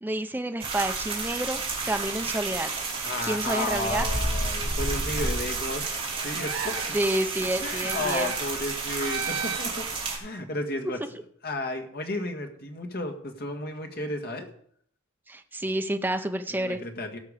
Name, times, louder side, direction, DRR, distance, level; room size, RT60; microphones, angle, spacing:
voice 1, 0.0-2.7 3.2-4.1 6.9-8.3 15.3-16.8, right 1 dB, 10° right, 6 dB, 0.6 m, -29 dB
sound 1, 0.6-10.2, right 3 dB, 25° right, 2.9 m, -31 dB
voice 2, 3.0-7.0 7.6-9.8 10.2-11.0 11.4-14.5 16.5-17.2, left 2 dB, 50° left, 5 dB, 1.7 m, -33 dB
sound 2, 6.4-7.0 7.8-8.5 9.0-9.9, right 5 dB, 85° right, 1.8 m, -33 dB
17.5 x 5.9 x 5.0 m, 0.62 s
head